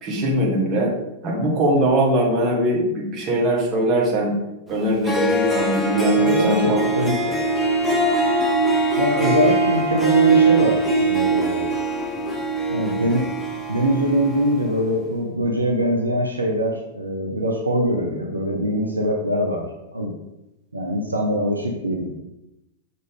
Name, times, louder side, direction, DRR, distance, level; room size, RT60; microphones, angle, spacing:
voice 1, 0.0-0.9 1.2-4.4 4.7-6.8, right 1 dB, 35° right, -2 dB, 1.9 m, -21 dB
Harp, 4.8-4.9 5.0-14.6, right 3 dB, ahead, 1.1 m, -21 dB
voice 2, 6.1-7.4 9.0-11.7 12.7-13.3 13.7-19.7 19.9-20.1 20.7-22.1, equal, 80° right, 1 dB, 0.7 m, -23 dB
6.3 x 4.2 x 3.6 m, 0.93 s
figure-of-eight pair, 95°, 0 cm